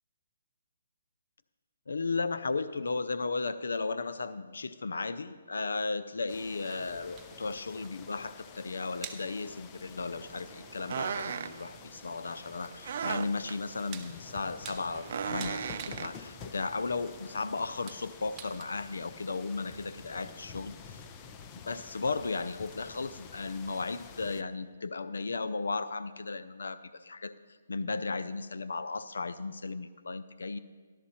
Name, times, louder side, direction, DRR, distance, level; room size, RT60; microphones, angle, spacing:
voice 1, 1.9-21.0 21.7-27.3 27.7-30.6, left 3 dB, 80° left, 14 dB, 0.5 m, -35 dB
sound 1, 6.3-24.4, left 6 dB, 25° left, 0.6 m, -50 dB
sound 2, 6.6-18.6, right 7 dB, 20° right, 0.9 m, -52 dB
sound 3, 10.2-16.6, right 7 dB, 50° right, 0.5 m, -38 dB
14.0 x 12.0 x 4.2 m, 1.5 s
hypercardioid pair, 150°, 0 cm